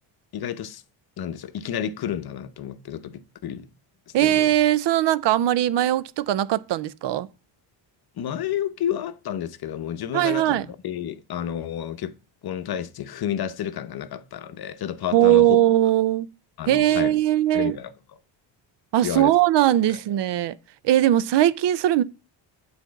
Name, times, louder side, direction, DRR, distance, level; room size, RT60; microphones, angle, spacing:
voice 1, 0.3-0.8 1.2-3.7 4.2-4.6 8.2-12.1 12.4-15.5 16.6-17.1 17.5-17.9 19.0-19.3 19.9-20.0, left 10 dB, 50° left, 0.9 m, -31 dB
voice 2, 4.1-7.3 10.1-10.7 15.1-16.3 16.7-17.8 18.9-20.5 20.8-22.0, right 13 dB, 60° right, 0.7 m, -20 dB
8.3 x 4.4 x 5.1 m
cardioid pair, 110°, 48 cm